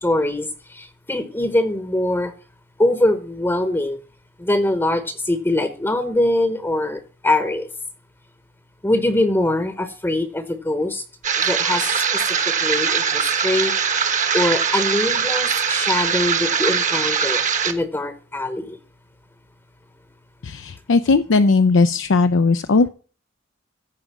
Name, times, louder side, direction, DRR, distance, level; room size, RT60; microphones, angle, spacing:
voice 1, 0.0-2.3 2.8-4.0 4.4-7.7 8.8-11.0 11.4-13.7 14.3-18.8, left 1 dB, 10° left, 9 dB, 0.9 m, -23 dB
sound 1, 11.2-17.7, right 6 dB, 40° right, 1.2 m, -21 dB
voice 2, 20.4-22.9, left 3 dB, 65° left, 9 dB, 0.5 m, -17 dB
14.5 x 5.0 x 7.2 m, 0.38 s
head